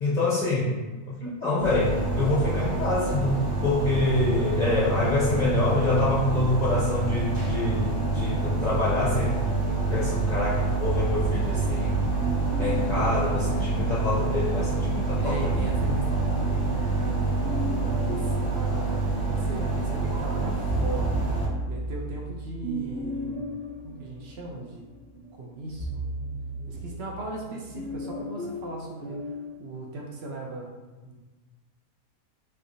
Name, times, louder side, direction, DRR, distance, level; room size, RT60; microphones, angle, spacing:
voice 1, 0.0-0.8 1.1-12.1 12.6-16.0, left 2 dB, 45° left, -8 dB, 0.6 m, -26 dB
sound 1, 1.6-21.5, right 3 dB, 40° right, 1.2 m, -27 dB
sound 2, 10.9-14.4 15.3-19.8 20.2-29.5, right 1 dB, 20° right, 1.2 m, -35 dB
voice 2, 15.2-17.3 17.7-21.2 21.7-23.4 23.8-24.8 25.3-26.0 26.7-30.7 31.0-31.2, right 2 dB, 65° right, -1 dB, 0.6 m, -38 dB
3.6 x 3.3 x 2.6 m, 1.2 s
omnidirectional pair, 1.6 m